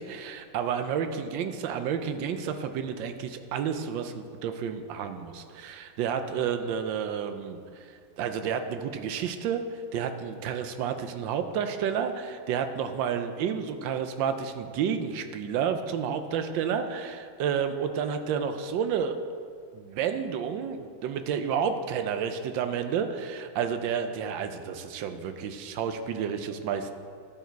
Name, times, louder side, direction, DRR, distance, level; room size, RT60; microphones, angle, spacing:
voice 1, 0.0-19.2 19.7-26.9, right 7 dB, 85° right, 8 dB, 1.4 m, -30 dB
12.0 x 4.7 x 4.5 m, 2.2 s
omnidirectional pair, 2.0 m